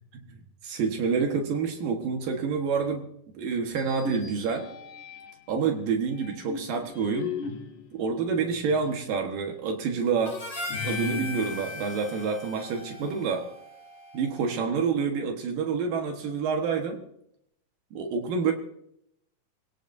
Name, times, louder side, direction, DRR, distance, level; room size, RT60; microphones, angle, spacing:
voice 1, 0.6-3.1 3.4-4.7 5.5-7.3 7.9-10.4 10.8-13.5 14.1-17.0 17.9-18.5, right 5 dB, 80° right, 3 dB, 3.1 m, -28 dB
sound 1, 3.7-5.5 6.1-9.1 9.5-9.6 10.7-12.8, left 6 dB, 65° left, 2.6 m, -39 dB
Harmonica, 10.3-14.7, left 3 dB, 40° left, 4.0 m, -38 dB
24.5 x 17.5 x 2.7 m, 0.74 s
omnidirectional pair, 3.9 m